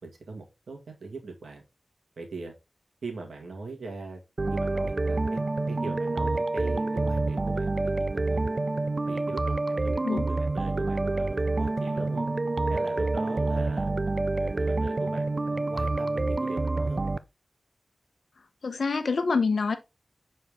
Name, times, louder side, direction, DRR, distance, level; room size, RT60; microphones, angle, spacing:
voice 1, 0.0-1.6 2.2-2.5 3.0-5.4 5.7-8.6 9.1-12.3 12.7-13.9 14.4-17.0, right 3 dB, 90° right, 1.8 m, -40 dB
sound 1, 4.4-17.2, right 2 dB, 45° right, 0.4 m, -27 dB
voice 2, 18.6-19.8, left 4 dB, 80° left, 0.9 m, -26 dB
6.7 x 4.3 x 3.5 m
wide cardioid pair, 55°, 0 cm